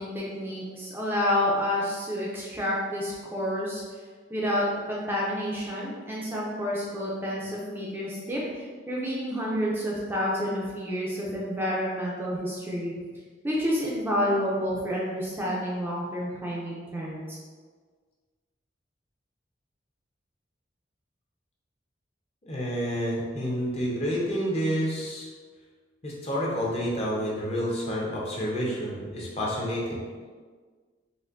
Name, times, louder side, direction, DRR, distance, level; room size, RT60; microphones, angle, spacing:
voice 1, 0.0-3.8 4.3-12.9 13.4-17.2, equal, 10° right, -5 dB, 0.5 m, -29 dB
voice 2, 22.4-25.3 26.0-30.0, equal, 35° left, -4 dB, 0.8 m, -29 dB
4.2 x 2.6 x 2.6 m, 1.5 s
head